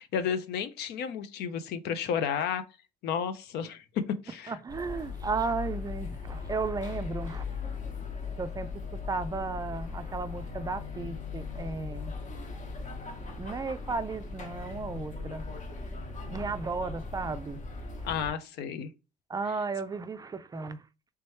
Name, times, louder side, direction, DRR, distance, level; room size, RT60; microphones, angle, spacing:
voice 1, 0.0-2.6 3.0-3.8 4.2-4.6 18.0-18.9, left 7 dB, 75° left, 0.6 m, -32 dB
voice 2, 4.5-7.4 8.4-8.7 9.1-12.1 13.4-15.4 16.3-17.6 19.3-20.8, right 4 dB, 20° right, 0.4 m, -34 dB
sound 1, 4.7-18.3, left 4 dB, 45° left, 1.0 m, -38 dB
3.3 x 3.0 x 3.1 m
cardioid pair, 110°, 17 cm